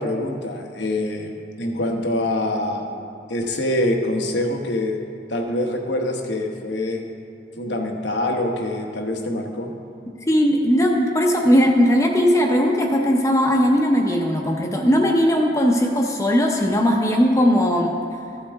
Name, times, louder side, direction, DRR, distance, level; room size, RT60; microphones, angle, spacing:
voice 1, 0.0-1.3 1.6-2.9 3.3-5.0 5.3-7.0 7.6-9.7, left 1 dB, 85° left, 3 dB, 1.1 m, -25 dB
voice 2, 10.3-17.9, equal, 15° left, 0 dB, 0.7 m, -18 dB
14.0 x 8.5 x 3.5 m, 2.4 s
head